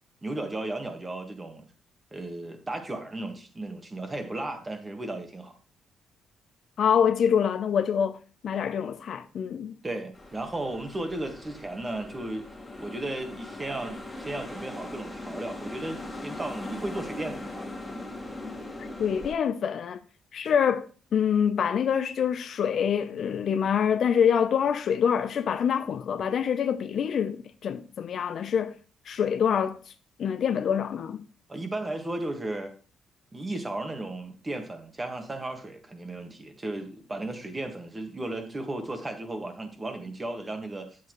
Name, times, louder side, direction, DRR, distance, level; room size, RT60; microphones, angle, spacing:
voice 1, 0.2-1.6 2.1-5.5 9.8-12.4 12.8-17.7 31.5-32.7 33.3-40.9, right 2 dB, 25° right, 1.6 m, -35 dB
voice 2, 6.8-9.8 18.8-20.0 20.3-28.7 29.1-29.8 30.2-31.2, left 8 dB, 60° left, 0.6 m, -26 dB
sound 1, 10.1-19.3, left 2 dB, 15° left, 2.2 m, -40 dB
8.1 x 7.7 x 3.1 m
cardioid pair, 90°, 0 cm